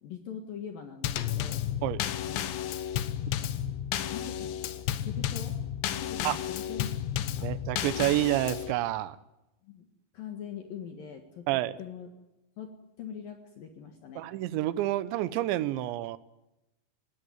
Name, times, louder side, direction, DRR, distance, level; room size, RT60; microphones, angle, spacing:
voice 1, 0.0-1.6 2.2-2.5 3.4-3.6 4.1-5.6 6.0-7.5 9.6-9.9 10.1-11.5 11.8-12.1 12.6-12.7 13.0-14.3, left 8 dB, 60° left, 5 dB, 3.0 m, -42 dB
Drum kit / Snare drum / Bass drum, 1.0-8.7, left 11 dB, 75° left, 3.2 m, -32 dB
voice 2, 7.4-9.2 11.5-11.8 14.2-16.2, right 15 dB, 80° right, 15 dB, 3.1 m, -29 dB
20.0 x 17.0 x 9.4 m, 0.93 s
omnidirectional pair, 5.4 m